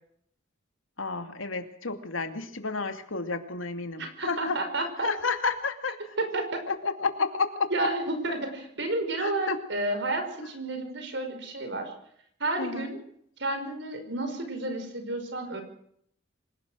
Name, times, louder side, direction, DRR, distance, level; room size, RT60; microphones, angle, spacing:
voice 1, 1.0-4.6 5.0-6.2 6.7-7.9 9.2-9.6 10.4-10.5 12.6-12.9, left 4 dB, 85° left, 7 dB, 2.5 m, -31 dB
voice 2, 4.0-5.1 6.2-6.6 7.7-11.9 12.4-13.0 13.4-15.6, right 2 dB, 60° right, 7 dB, 5.5 m, -31 dB
27.0 x 17.5 x 6.4 m, 0.67 s
head